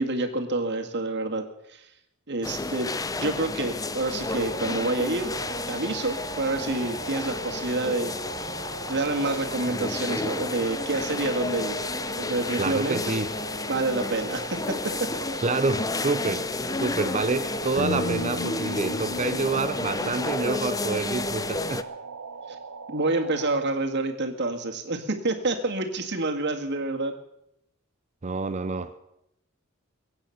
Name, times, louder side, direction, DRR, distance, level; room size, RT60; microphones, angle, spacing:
voice 1, 0.0-1.8 2.3-2.9 3.2-5.3 5.7-8.1 8.9-11.8 12.2-13.0 13.7-14.8 15.0-15.1 22.9-27.1, right 2 dB, 55° right, 4 dB, 2.0 m, -28 dB
sound 1, 2.4-21.8, left 3 dB, 15° left, 0.5 m, -32 dB
sound 2, 4.2-23.6, right 5 dB, 85° right, 1.0 m, -40 dB
voice 2, 12.6-13.3 15.4-16.5 16.8-21.9 28.2-29.0, right 3 dB, 35° right, 11 dB, 0.6 m, -27 dB
sound 3, 17.8-21.9, left 3 dB, 55° left, 1.0 m, -35 dB
22.5 x 8.9 x 5.8 m, 0.80 s
head